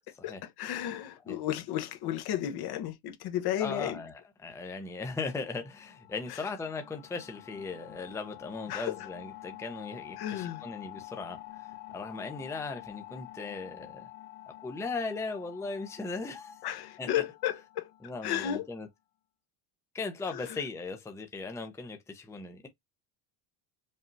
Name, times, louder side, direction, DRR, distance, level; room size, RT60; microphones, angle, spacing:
voice 1, 0.2-4.0 6.3-6.5 8.7-9.1 10.2-10.6 16.6-17.9 18.2-18.7 20.3-20.6, left 11 dB, 50° left, 1.0 m, -33 dB
voice 2, 3.6-4.1 4.4-14.1 14.6-16.6 17.0-17.1 18.0-18.9 19.9-22.7, left 4 dB, 5° left, 0.7 m, -38 dB
sound 1, 5.2-18.6, left 16 dB, 80° left, 1.1 m, -48 dB
5.3 x 2.7 x 2.6 m
supercardioid pair, 120°, 49 cm